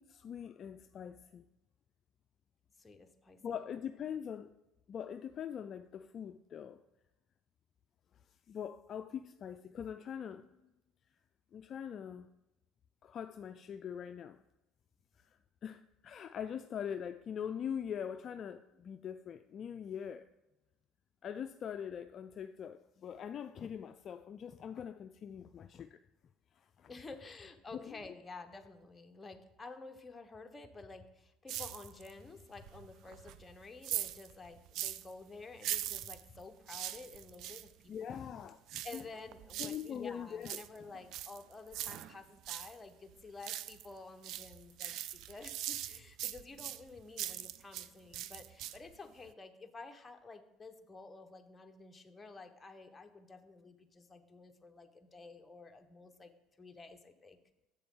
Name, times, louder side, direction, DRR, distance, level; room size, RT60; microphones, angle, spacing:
voice 1, 0.0-1.4 3.4-4.5 4.9-6.8 8.5-10.5 11.5-12.3 13.0-14.4 15.2-20.3 21.2-26.0 26.6-26.9 27.7-28.0 37.9-39.0 39.6-40.6, left 8 dB, 45° left, 0.3 m, -43 dB
voice 2, 2.8-3.4 26.9-38.2 38.8-56.3 56.6-57.4, left 3 dB, 20° left, 0.9 m, -51 dB
sound 1, 31.5-32.2 32.6-35.1 35.6-37.7 38.7-39.9 40.3-42.7 43.1-43.9 44.2-47.9 48.1-49.0 49.3-49.4, right 12 dB, 65° right, 0.4 m, -41 dB
7.7 x 6.9 x 3.7 m
supercardioid pair, 90°, 0 cm